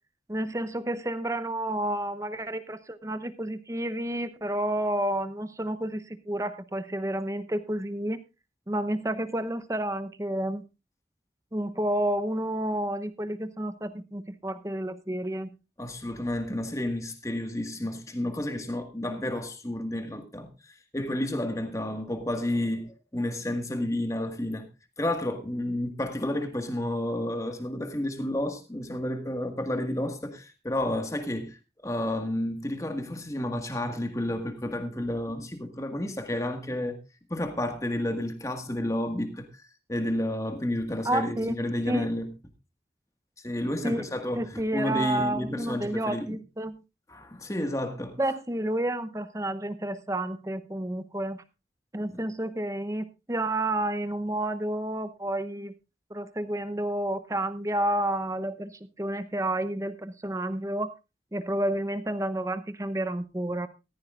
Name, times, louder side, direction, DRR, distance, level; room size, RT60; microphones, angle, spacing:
voice 1, 0.3-8.2 8.7-10.6 11.5-15.5 41.0-41.5 41.9-42.1 43.8-44.0 44.4-46.8 48.2-51.4 51.9-55.7 56.1-60.9 61.3-63.7, right 1 dB, 15° right, 0.8 m, -30 dB
voice 2, 15.8-24.7 25.0-37.0 37.3-39.6 39.9-42.3 43.4-46.3 47.1-48.2 52.1-52.2, left 1 dB, 20° left, 1.7 m, -31 dB
14.5 x 14.5 x 2.5 m
head